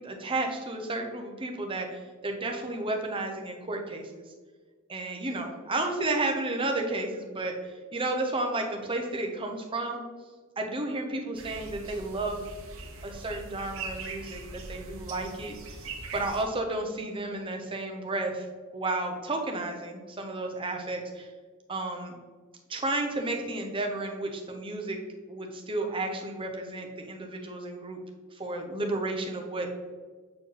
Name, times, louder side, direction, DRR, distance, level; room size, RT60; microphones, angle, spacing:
voice 1, 0.0-4.2 4.9-10.1 10.6-12.5 13.0-15.6 16.1-18.4 18.7-21.3 21.7-22.2 22.7-25.0 25.3-28.0 28.3-29.8, right 2 dB, 25° right, 3 dB, 0.7 m, -32 dB
sound 1, 11.3-16.4, right 3 dB, 75° right, 1.0 m, -41 dB
8.0 x 4.5 x 3.3 m, 1.5 s
head